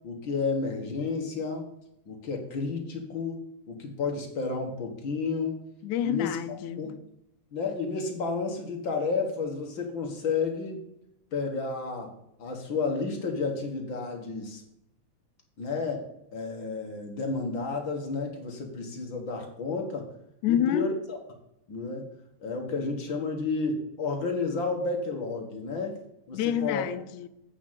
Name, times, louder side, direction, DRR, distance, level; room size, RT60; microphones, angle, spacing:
voice 1, 0.0-1.7 2.1-3.4 3.7-5.6 6.0-6.4 6.8-6.9 7.5-10.8 11.3-12.1 12.4-14.6 15.6-16.0 16.3-20.1 20.5-21.2 21.7-22.1 22.4-26.0 26.3-26.8, left 4 dB, 45° left, 2.1 m, -31 dB
voice 2, 5.8-6.9 20.4-20.9 26.3-27.3, left 10 dB, 80° left, 2.0 m, -28 dB
8.6 x 5.1 x 7.5 m
omnidirectional pair, 3.5 m